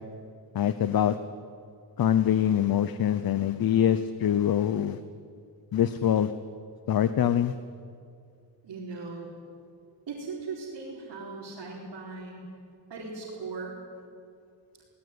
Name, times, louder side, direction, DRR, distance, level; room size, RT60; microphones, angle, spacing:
voice 1, 0.5-1.2 2.0-5.0 5.7-6.3 6.9-7.6, left 10 dB, 55° left, 12 dB, 0.8 m, -24 dB
voice 2, 8.6-9.3 10.1-12.4 12.9-13.7, right 4 dB, 65° right, -5 dB, 4.5 m, -38 dB
21.0 x 18.5 x 9.8 m, 2.3 s
wide cardioid pair, 160°, 44 cm